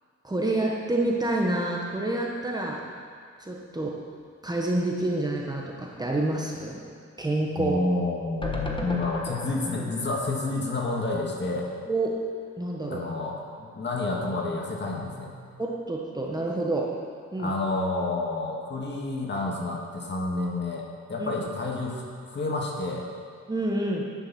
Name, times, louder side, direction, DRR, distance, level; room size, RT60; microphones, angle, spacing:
voice 1, 0.2-2.8 3.4-4.0 4.4-6.8 7.2-7.8 11.8-12.2 12.6-13.0 15.6-16.9 17.3-17.5 21.2-21.3 23.5-24.1, right 2 dB, 15° right, -2 dB, 1.3 m, -28 dB
voice 2, 7.6-11.7 12.9-15.3 17.4-23.1, left 2 dB, 35° left, -1 dB, 2.1 m, -29 dB
sound 1, 8.4-11.7 12.0-12.1 12.3-12.4, left 2 dB, 15° left, 1.3 m, -36 dB
11.0 x 10.0 x 4.3 m, 2.1 s
cardioid pair, 90°, 30 cm